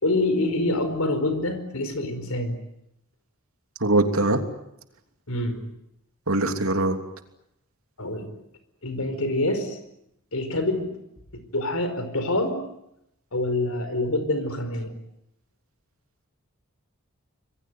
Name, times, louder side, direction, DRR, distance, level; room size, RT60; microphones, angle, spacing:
voice 1, 0.0-2.6 5.3-5.6 8.0-8.3 8.8-9.8 10.3-11.0 11.3-12.6 13.3-14.9, left 2 dB, 85° left, 10 dB, 4.9 m, -26 dB
voice 2, 3.8-4.4 6.3-7.0, right 2 dB, 75° right, 6 dB, 3.0 m, -21 dB
26.5 x 22.0 x 9.3 m, 0.80 s
head